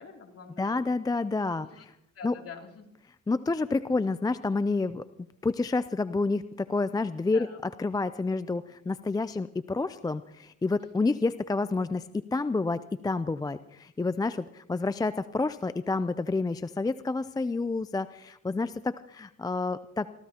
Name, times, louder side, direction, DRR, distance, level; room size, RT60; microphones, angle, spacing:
voice 1, 0.0-0.9 1.6-1.8 2.1-2.9 7.3-7.6, left 6 dB, 50° left, 1 dB, 3.0 m, -46 dB
voice 2, 0.6-1.7 2.2-2.3 3.3-5.0 5.4-12.1 12.3-20.1, left 3 dB, 15° left, 13 dB, 0.4 m, -29 dB
25.5 x 15.0 x 2.9 m, 0.82 s
cardioid pair, 90°, 30 cm